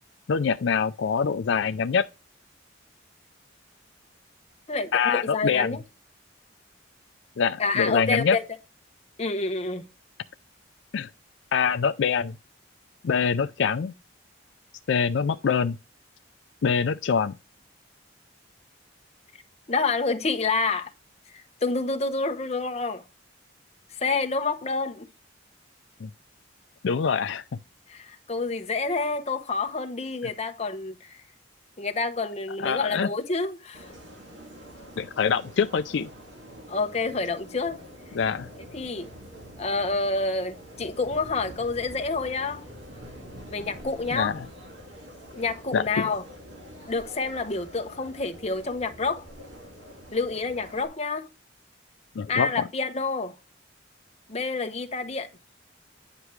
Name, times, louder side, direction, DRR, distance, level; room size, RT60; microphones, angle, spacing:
voice 1, 0.3-2.1 4.9-5.8 7.4-8.4 10.9-11.1 11.5-12.4 13.0-13.9 14.9-15.8 16.6-17.3 26.0-26.1 26.8-27.4 32.6-33.1 35.0-36.1 38.1-38.5 44.1-44.5 45.7-46.1 52.2-52.7, left 6 dB, 70° left, 0.4 m, -24 dB
voice 2, 4.7-5.8 7.6-8.4 9.2-9.9 19.7-20.9 21.3-23.0 24.0-25.0 27.9-31.2 31.8-33.9 36.7-37.8 38.7-39.1 39.6-42.6 43.5-44.4 45.4-46.2 46.9-49.2 50.1-51.3 52.3-53.3 54.3-55.3, left 3 dB, 35° left, 0.9 m, -28 dB
sound 1, 33.7-50.9, equal, 70° right, 2.2 m, -45 dB
9.8 x 5.9 x 3.2 m
head